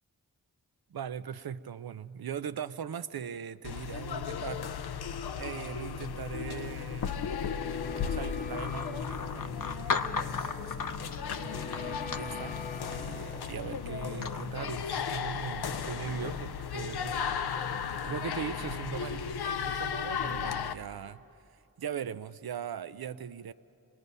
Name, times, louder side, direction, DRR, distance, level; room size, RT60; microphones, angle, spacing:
voice 1, 0.9-4.7 5.4-7.3 8.0-10.5 11.3-17.3 17.7-21.2 21.5-23.5, right 8 dB, 75° right, 13 dB, 0.6 m, -40 dB
sound 1, 3.6-20.7, left 7 dB, 85° left, 0.6 m, -35 dB
sound 2, 6.5-18.2 18.4-18.5, left 4 dB, 25° left, 0.5 m, -46 dB
sound 3, 8.5-16.4, left 5 dB, 60° left, 0.8 m, -39 dB
26.5 x 20.0 x 5.4 m, 2.8 s
wide cardioid pair, 55°, 37 cm